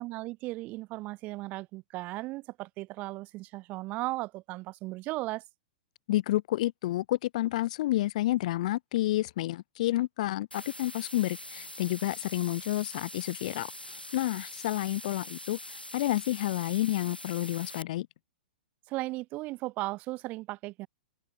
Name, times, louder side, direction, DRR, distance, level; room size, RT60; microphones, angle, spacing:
voice 1, 0.0-5.4 18.9-20.9, right 20 dB, 30° right, 0.6 m, -36 dB
voice 2, 6.1-18.1, left 15 dB, 50° left, 0.9 m, -30 dB
sound 1, 10.5-17.8, left 1 dB, 90° left, 3.8 m, -44 dB
open air
figure-of-eight pair, 110°, 5 cm